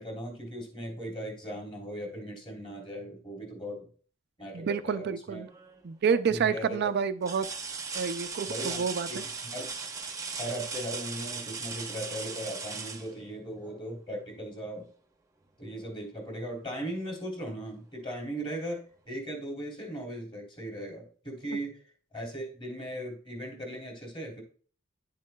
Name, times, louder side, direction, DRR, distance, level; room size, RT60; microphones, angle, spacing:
voice 1, 0.0-3.9 4.4-5.4 6.3-6.9 8.5-8.8 9.1-9.8 10.4-14.9 15.6-18.8 19.1-21.7 22.1-24.4, right 1 dB, 25° left, 0 dB, 2.9 m, -38 dB
voice 2, 4.5-5.5 5.8-7.5 7.9-9.2 21.5-21.6, right 6 dB, 55° right, 10 dB, 0.4 m, -29 dB
sound 1, 5.5-5.9 6.5-6.6 7.2-13.9 15.7-15.8 16.3-17.3 18.6-18.7, right 5 dB, 15° right, 0.8 m, -38 dB
10.0 x 7.5 x 2.3 m, 0.43 s
head